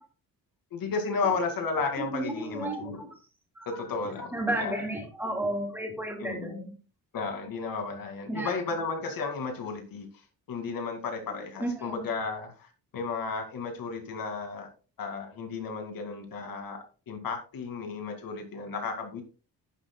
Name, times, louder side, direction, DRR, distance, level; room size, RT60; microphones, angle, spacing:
voice 1, 0.7-3.0 3.7-4.3 4.6-4.8 6.2-6.6 7.1-10.1 10.5-12.5 12.9-14.7 15.0-19.2, left 4 dB, 75° left, 4 dB, 2.4 m, -33 dB
voice 2, 2.0-3.1 3.6-3.9 4.2-6.7 8.3-8.6 11.3-12.1, right 1 dB, 5° right, 0 dB, 2.8 m, -33 dB
11.0 x 10.5 x 2.3 m, 0.35 s
wide cardioid pair, 170°, 34 cm